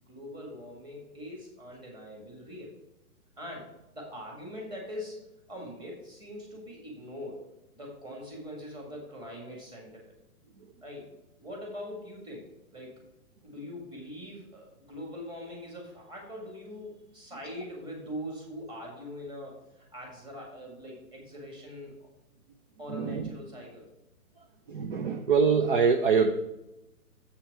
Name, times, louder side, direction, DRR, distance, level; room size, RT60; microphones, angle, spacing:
voice 1, 0.1-2.7 3.4-5.2 5.5-7.4 7.8-10.2 10.8-11.1 11.4-13.0 13.4-22.1 22.8-23.9, left 1 dB, 10° right, -1 dB, 1.8 m, -42 dB
voice 2, 22.9-23.3 24.4-26.3, right 5 dB, 35° right, 5 dB, 0.6 m, -25 dB
7.5 x 5.7 x 4.7 m, 0.91 s
hypercardioid pair, 145°, 45 cm